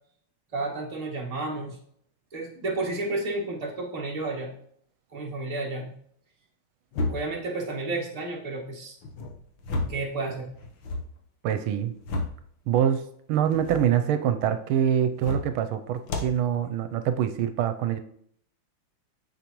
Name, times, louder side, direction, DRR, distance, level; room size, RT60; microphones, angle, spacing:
voice 1, 0.5-1.8 2.3-4.5 5.1-5.9 7.1-8.9 9.8-10.5, right 2 dB, 20° right, -2 dB, 1.5 m, -31 dB
sound 1, 6.9-7.5 9.0-10.1 10.4-11.1 11.7-12.5 13.4-13.9 15.1-15.6 16.0-16.4, left 2 dB, 70° left, 1.8 m, -32 dB
voice 2, 11.4-11.9 12.7-18.0, right 9 dB, 85° right, 9 dB, 1.5 m, -25 dB
9.3 x 6.9 x 3.1 m, 0.65 s
omnidirectional pair, 2.3 m